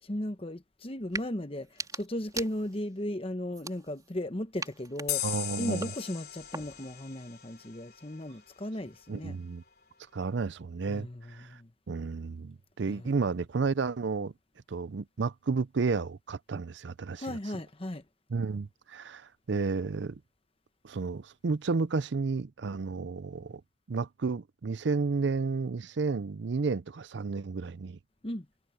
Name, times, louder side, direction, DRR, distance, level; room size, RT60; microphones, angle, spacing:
voice 1, 0.0-5.3 5.6-9.4 10.9-11.7 12.9-13.1 17.1-18.0 28.2-28.5, left 1 dB, 30° left, 1.1 m, -36 dB
sound 1, 1.0-1.3 1.6-3.0 3.5-4.2 4.6-7.0, right 4 dB, 20° right, 3.9 m, -42 dB
sound 2, 5.1-8.4, left 13 dB, 50° left, 3.3 m, -38 dB
voice 2, 5.2-5.9 9.1-9.6 10.1-11.6 11.9-14.3 14.7-17.4 18.3-20.2 20.8-23.6 23.9-28.0, right 4 dB, 60° right, 0.5 m, -32 dB
head